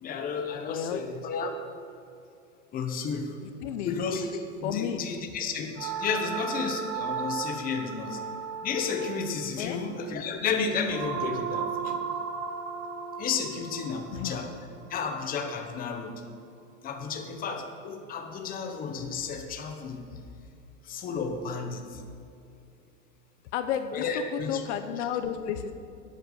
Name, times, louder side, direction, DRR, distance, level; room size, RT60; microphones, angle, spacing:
voice 1, 0.0-1.5 2.7-3.4 3.8-8.2 8.6-12.0 13.2-14.5 14.9-16.2 16.8-20.2 20.8-22.0 23.9-24.7, left 5 dB, 20° left, 5 dB, 1.0 m, -32 dB
voice 2, 0.7-1.0 3.4-4.0 4.6-5.0 9.6-9.8 14.1-14.4 23.5-25.7, left 9 dB, 60° left, 9 dB, 0.9 m, -32 dB
sound 1, 5.7-15.9, right 6 dB, 70° right, 1.8 m, -36 dB
12.5 x 8.2 x 6.4 m, 2.6 s
supercardioid pair, 155°, 39 cm